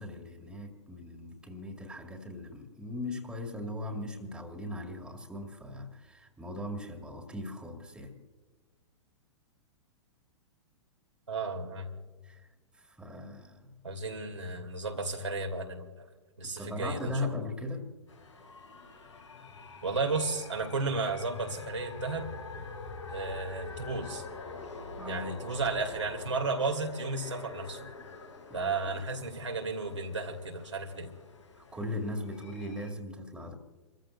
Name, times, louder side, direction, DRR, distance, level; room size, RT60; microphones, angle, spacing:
voice 1, 0.0-8.1 12.2-12.5 12.7-13.7 16.4-17.9 25.0-25.3 28.5-29.0 31.6-33.5, left 1 dB, 5° right, 3 dB, 2.1 m, -39 dB
voice 2, 11.3-12.0 13.8-16.1 16.4-17.3 19.8-22.3 23.1-24.2 25.1-27.9 28.5-31.1, right 3 dB, 80° right, 2 dB, 2.4 m, -33 dB
sound 1, 18.1-32.9, left 3 dB, 85° left, 6.1 m, -45 dB
29.0 x 14.5 x 2.5 m, 1.3 s
figure-of-eight pair, 105°, 15 cm